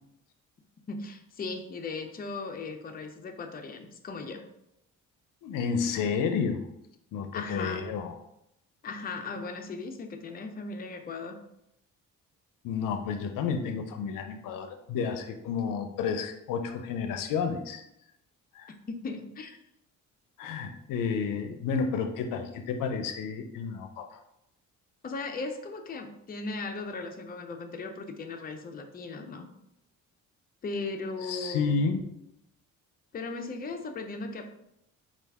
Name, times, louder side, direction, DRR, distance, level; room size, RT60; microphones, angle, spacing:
voice 1, 0.9-4.4 7.3-7.9 8.8-11.4 18.9-19.6 25.0-29.5 30.6-31.8 33.1-34.5, left 3 dB, 30° left, 5 dB, 0.5 m, -37 dB
voice 2, 5.4-6.6 7.1-8.2 12.6-17.8 18.5-18.7 20.4-24.2 31.2-32.1, left 5 dB, 80° left, 6 dB, 0.5 m, -31 dB
4.5 x 2.4 x 3.4 m, 0.82 s
cardioid pair, 85°, 32 cm